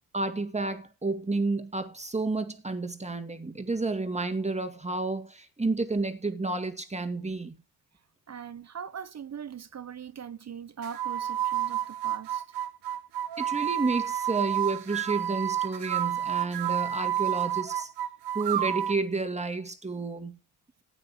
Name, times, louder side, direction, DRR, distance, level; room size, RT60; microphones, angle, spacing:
voice 1, 0.1-7.6 13.4-17.9 18.3-20.4, right 3 dB, 15° right, 2.1 m, -30 dB
voice 2, 8.3-12.5, right 7 dB, 40° right, 0.7 m, -41 dB
sound 1, 10.8-19.0, right 11 dB, 90° right, 1.1 m, -30 dB
13.5 x 9.3 x 3.6 m
supercardioid pair, 60°, 39 cm